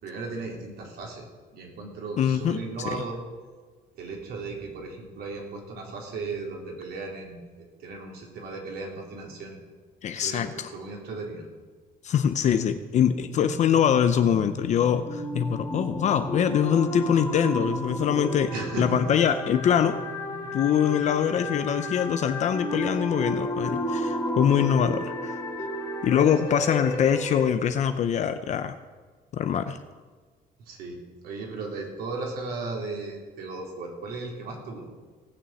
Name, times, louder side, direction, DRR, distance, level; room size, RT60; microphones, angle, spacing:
voice 1, 0.0-1.3 1.5-3.2 4.0-9.6 10.1-11.5 18.5-19.2 26.3-26.4 26.7-27.1 30.6-34.8, right 3 dB, 65° right, 0 dB, 3.6 m, -36 dB
voice 2, 2.2-2.6 2.8-3.0 10.0-10.7 12.0-18.5 18.8-20.0 20.5-25.4 26.0-28.7 29.3-29.8, left 8 dB, 45° left, 10 dB, 0.6 m, -23 dB
sound 1, 13.0-27.4, equal, 25° left, 2.1 m, -32 dB
18.0 x 7.0 x 7.7 m, 1.4 s
cardioid pair, 165°, 17 cm